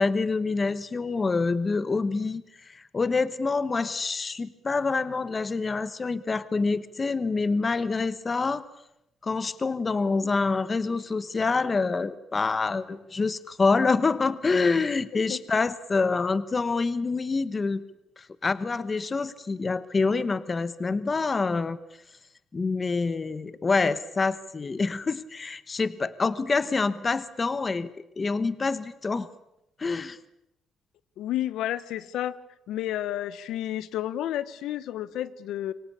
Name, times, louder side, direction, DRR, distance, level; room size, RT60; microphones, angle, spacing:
voice 1, 0.0-8.6 9.2-17.8 18.2-21.8 22.5-29.3 29.8-30.2, left 4 dB, 20° left, 15 dB, 1.0 m, -26 dB
voice 2, 31.2-32.4 32.7-35.7, left 12 dB, 85° left, 17 dB, 1.2 m, -31 dB
26.5 x 24.0 x 8.6 m, 0.83 s
cardioid pair, 170°, 0 cm